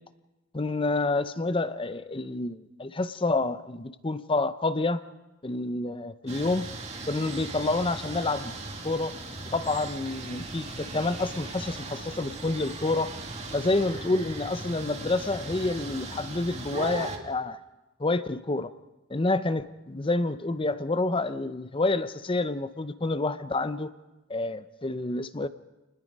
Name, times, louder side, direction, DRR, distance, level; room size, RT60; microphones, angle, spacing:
voice 1, 0.5-5.0 5.4-6.7 7.1-8.5 8.8-9.1 9.5-13.1 13.5-17.6 18.0-18.7 19.1-23.9 24.3-25.5, left 2 dB, 25° left, 13 dB, 0.6 m, -28 dB
sound 1, 6.3-17.2, right 2 dB, 30° right, 2.1 m, -38 dB
28.5 x 20.5 x 5.3 m, 1.1 s
head